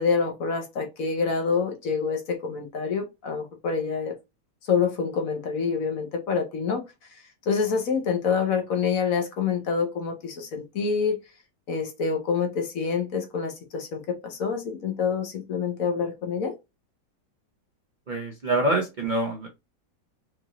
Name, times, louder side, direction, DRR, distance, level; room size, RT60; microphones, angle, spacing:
voice 1, 0.0-4.2 4.7-6.9 7.5-11.2 11.7-16.5, left 5 dB, 55° left, 1.1 m, -27 dB
voice 2, 18.1-19.5, right 1 dB, 70° right, 0.4 m, -25 dB
4.6 x 2.5 x 3.0 m
omnidirectional pair, 2.0 m